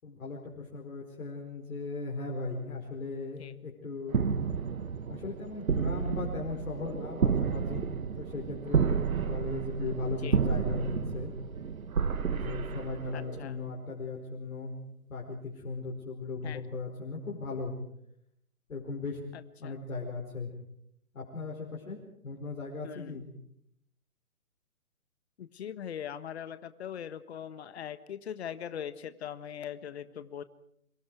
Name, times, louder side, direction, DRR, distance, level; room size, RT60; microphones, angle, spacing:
voice 1, 0.0-4.2 5.1-7.9 8.2-11.3 12.3-14.7 15.1-17.7 18.7-19.2 19.6-20.5 21.1-22.0 22.2-23.2, left 3 dB, 65° left, -3 dB, 4.9 m, -37 dB
sound 1, 4.1-13.6, right 6 dB, 70° right, 1.7 m, -31 dB
voice 2, 13.1-13.5 16.4-16.6 19.3-19.7 22.8-23.2 25.4-30.4, left 9 dB, 45° left, 13 dB, 1.4 m, -41 dB
30.0 x 25.0 x 4.8 m, 0.74 s
figure-of-eight pair, 145°, 43 cm